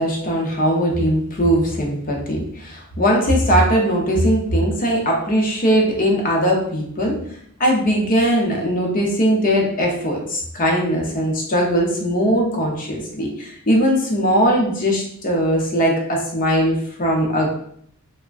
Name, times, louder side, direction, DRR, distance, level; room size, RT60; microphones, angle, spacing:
voice 1, 0.0-7.2 7.6-17.5, equal, 40° left, 0 dB, 0.6 m, -19 dB
3.4 x 2.1 x 2.4 m, 0.67 s
head